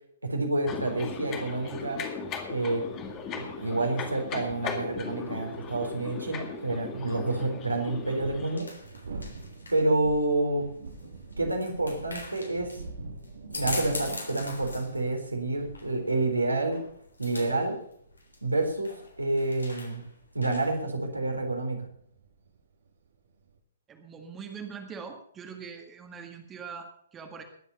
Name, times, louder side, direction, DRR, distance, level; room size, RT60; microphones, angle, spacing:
voice 1, 0.2-2.0 2.5-2.9 3.3-8.8 9.7-10.8 11.4-12.8 13.4-16.9 17.2-17.8 18.4-20.0 20.3-21.9, right 2 dB, 80° right, 2 dB, 4.0 m, -29 dB
sound 1, 0.7-8.6, left 5 dB, 25° left, 2.0 m, -38 dB
sound 2, 7.9-20.9, left 2 dB, 75° left, 3.5 m, -43 dB
sound 3, 8.2-23.6, right 3 dB, 60° right, 2.2 m, -45 dB
voice 2, 23.9-27.4, right 6 dB, 15° right, 4 dB, 1.8 m, -42 dB
20.5 x 8.2 x 5.7 m, 0.67 s
figure-of-eight pair, 120°, 0 cm